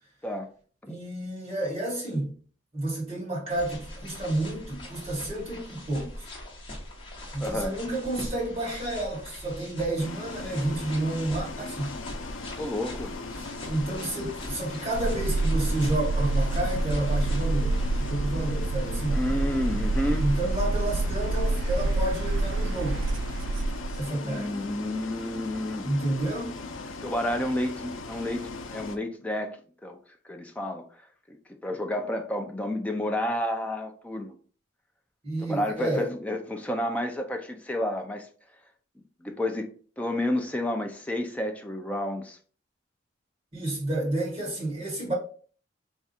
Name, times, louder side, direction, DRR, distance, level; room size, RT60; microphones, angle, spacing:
voice 1, 0.9-2.3 2.7-6.2 7.3-12.0 13.7-19.2 20.2-23.0 24.0-24.5 25.8-26.5 35.2-36.1 43.5-45.1, right 1 dB, 30° right, 1.8 m, -30 dB
sound 1, 3.5-18.1, left 1 dB, 25° left, 1.1 m, -41 dB
voice 2, 7.4-7.8 12.5-13.1 19.1-20.3 24.2-25.9 27.0-30.0 30.2-30.8 31.3-34.4 35.4-38.3 39.2-39.7 40.0-42.4, left 1 dB, 5° left, 0.4 m, -30 dB
Bus, 10.0-29.0, left 3 dB, 80° left, 0.5 m, -39 dB
sound 2, 14.9-24.1, right 2 dB, 65° right, 0.3 m, -27 dB
3.5 x 2.4 x 4.2 m
head